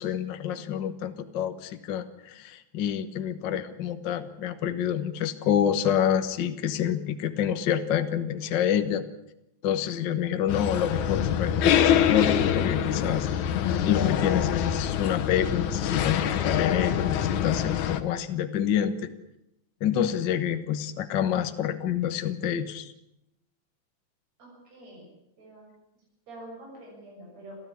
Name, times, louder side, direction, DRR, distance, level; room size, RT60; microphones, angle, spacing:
voice 1, 0.0-9.0 9.6-13.3 13.9-19.1 19.8-22.9, left 9 dB, 50° left, 9 dB, 1.5 m, -27 dB
sound 1, 10.5-18.0, left 9 dB, 80° left, 2.7 m, -25 dB
voice 2, 24.4-25.1 25.4-25.6 26.3-27.5, right 1 dB, 65° right, -3 dB, 8.2 m, -46 dB
27.0 x 14.5 x 9.9 m, 0.85 s
omnidirectional pair, 3.3 m